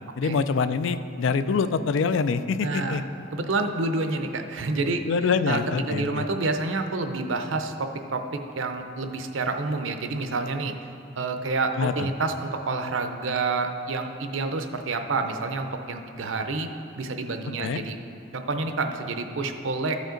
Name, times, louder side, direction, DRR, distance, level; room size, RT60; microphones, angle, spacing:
voice 1, 0.2-3.0 5.1-6.2 11.8-12.1 17.6-17.8, left 5 dB, 70° left, 12 dB, 0.4 m, -25 dB
voice 2, 2.6-3.0 3.3-5.6 5.9-10.7 11.2-16.7 16.9-18.0 18.3-20.0, right 3 dB, 75° right, 6 dB, 0.6 m, -28 dB
13.5 x 5.2 x 3.8 m, 2.8 s
head